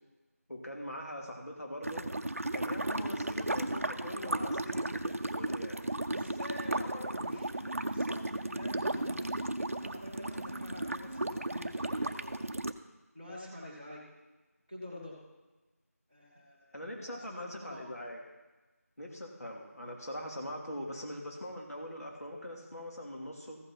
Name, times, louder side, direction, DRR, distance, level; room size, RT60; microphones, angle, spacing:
voice 1, 0.5-2.1 2.5-5.8 16.7-18.2 19.0-23.6, left 1 dB, 70° left, 0 dB, 2.8 m, -42 dB
sound 1, 1.8-12.7, right 1 dB, 60° right, 0.6 m, -35 dB
voice 2, 4.1-4.5 6.1-9.4 9.8-12.4 13.1-14.0 14.7-15.2 16.1-17.9, left 1 dB, 15° left, -9 dB, 1.2 m, -47 dB
14.5 x 5.7 x 5.7 m, 1.2 s
figure-of-eight pair, 180°, 9 cm